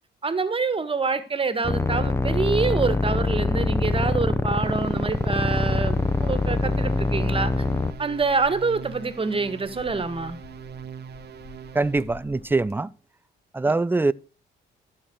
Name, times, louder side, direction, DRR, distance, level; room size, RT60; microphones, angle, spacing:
voice 1, 0.2-7.5 8.0-10.4 13.6-13.7, right 4 dB, 25° right, 1.6 m, -26 dB
sound 1, 1.6-7.9, left 2 dB, 15° left, 1.0 m, -24 dB
sound 2, 4.6-12.2, right 8 dB, 55° right, 1.0 m, -41 dB
sound 3, 5.4-12.7, left 5 dB, 55° left, 2.7 m, -49 dB
voice 2, 11.7-12.9 13.5-14.1, right 3 dB, 10° right, 0.5 m, -23 dB
14.0 x 6.0 x 6.4 m
cardioid pair, 90°, 20 cm